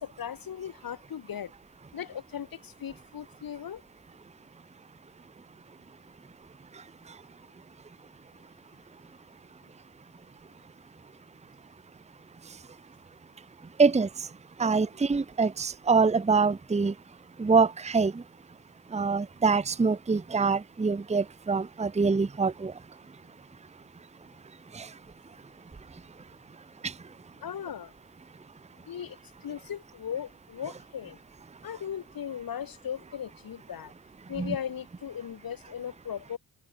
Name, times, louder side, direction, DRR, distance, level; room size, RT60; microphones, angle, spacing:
voice 1, 0.0-1.5 1.9-3.8 27.4-27.9 28.9-31.2 31.6-33.9 34.3-36.4, left 9 dB, 50° left, 1.8 m, -37 dB
voice 2, 14.6-16.9 17.4-18.2 18.9-22.7 24.7-24.9 26.8-26.9 34.4-34.5, right 4 dB, 15° right, 0.9 m, -25 dB
open air
supercardioid pair, 55°, 44 cm